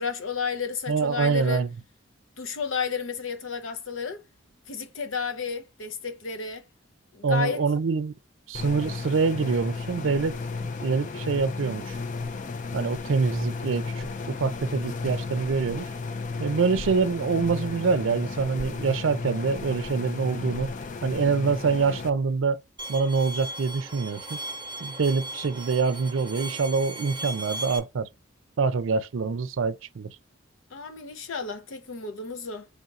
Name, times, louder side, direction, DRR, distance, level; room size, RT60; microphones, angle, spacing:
voice 1, 0.0-1.6 2.4-4.2 4.7-6.6 7.1-7.6 30.7-32.7, left 5 dB, 85° left, 0.7 m, -32 dB
voice 2, 0.9-1.7 7.2-8.1 8.5-10.4 10.8-12.0 12.7-15.9 16.4-20.7 21.0-22.6 22.9-24.4 24.8-28.1 28.6-30.1, right 4 dB, 80° right, 0.5 m, -25 dB
sound 1, 8.5-22.1, left 4 dB, 40° left, 0.4 m, -34 dB
Bowed string instrument, 22.8-27.8, right 1 dB, 25° right, 0.8 m, -37 dB
3.5 x 2.4 x 4.0 m
head